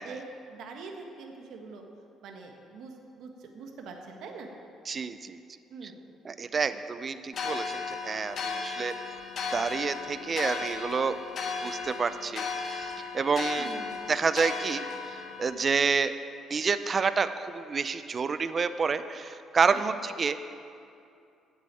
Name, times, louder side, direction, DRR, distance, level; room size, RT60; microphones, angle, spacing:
voice 1, 0.0-1.8 2.2-4.5 5.7-6.0 13.5-14.0 19.7-19.9, right 4 dB, 75° right, 2 dB, 1.5 m, -44 dB
voice 2, 4.9-5.4 5.8-5.9 6.2-8.9 9.5-11.2 11.6-13.7 14.1-16.1 16.5-20.4, right 5 dB, 35° right, 12 dB, 0.5 m, -29 dB
sound 1, 7.3-15.5, left 4 dB, 55° left, 1.5 m, -35 dB
8.2 x 7.7 x 8.9 m, 2.5 s
cardioid pair, 90°, 0 cm